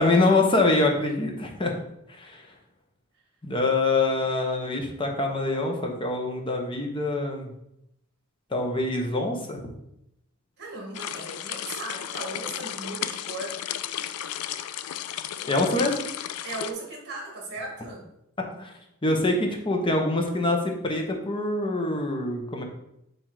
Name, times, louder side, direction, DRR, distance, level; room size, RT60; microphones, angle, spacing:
voice 1, 0.0-1.7 2.1-2.4 3.4-7.5 8.5-9.6 15.5-16.0 18.4-18.7 19.0-22.6, left 2 dB, 25° left, 2 dB, 0.8 m, -25 dB
voice 2, 10.6-13.6 16.4-18.0, right 2 dB, 50° right, -1 dB, 1.7 m, -37 dB
sound 1, 10.9-16.7, left 11 dB, 85° left, 0.3 m, -34 dB
7.5 x 2.6 x 4.7 m, 0.82 s
head